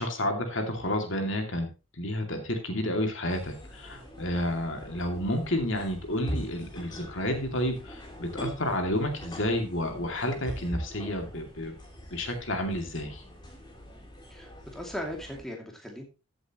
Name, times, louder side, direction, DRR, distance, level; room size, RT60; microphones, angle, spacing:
voice 1, 0.0-1.7 2.0-11.7 12.1-13.2, left 1 dB, 65° left, 4 dB, 2.4 m, -30 dB
sound 1, 3.3-15.4, equal, 20° left, 3.5 m, -42 dB
voice 2, 14.3-16.0, equal, ahead, 0 dB, 2.4 m, -38 dB
14.5 x 8.0 x 3.0 m, 0.30 s
head